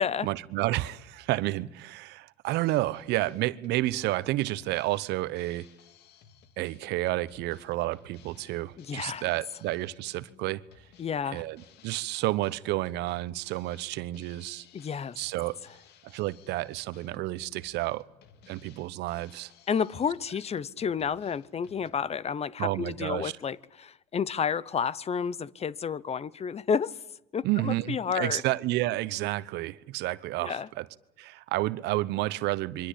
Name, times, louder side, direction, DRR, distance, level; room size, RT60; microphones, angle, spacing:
voice 1, 0.2-5.7 6.6-10.6 11.3-14.7 15.2-15.6 16.0-18.1 18.5-19.5 22.6-23.3 27.4-30.9 31.2-32.9, right 17 dB, 65° right, 1.0 m, -30 dB
Drum kit, 2.4-21.9, left 7 dB, 65° left, 2.2 m, -58 dB
voice 2, 8.8-9.2 11.0-11.4 14.7-15.2 19.7-27.0 27.3-28.4 30.4-30.7, left 7 dB, 35° left, 0.9 m, -30 dB
27.0 x 24.0 x 8.5 m
hypercardioid pair, 75°, 19 cm